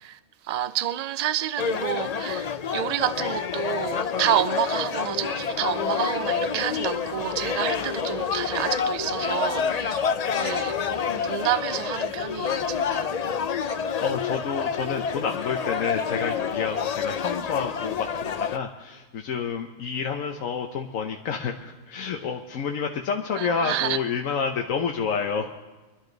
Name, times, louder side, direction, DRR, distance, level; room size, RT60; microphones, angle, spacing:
voice 1, 0.0-13.1 23.4-24.0, right 11 dB, 60° right, 0.4 m, -29 dB
sound 1, 1.6-18.6, left 6 dB, 50° left, 0.4 m, -28 dB
voice 2, 14.0-25.6, left 6 dB, 90° left, 1.3 m, -29 dB
24.5 x 11.5 x 3.9 m
omnidirectional pair, 1.3 m